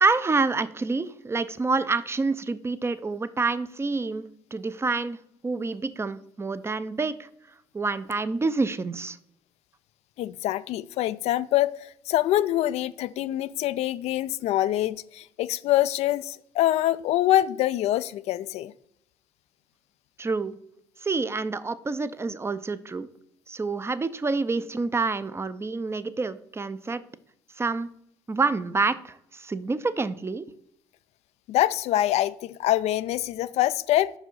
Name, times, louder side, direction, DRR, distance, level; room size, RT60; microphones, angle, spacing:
voice 1, 0.0-4.2 4.5-5.2 5.4-7.3 7.7-9.2 20.2-20.6 21.0-23.1 23.5-27.0 27.6-27.9 28.3-30.5, right 3 dB, 20° right, 0.5 m, -27 dB
voice 2, 10.2-18.7 31.5-34.1, left 14 dB, 70° left, 0.4 m, -25 dB
5.4 x 5.0 x 5.4 m
hypercardioid pair, 60°, 12 cm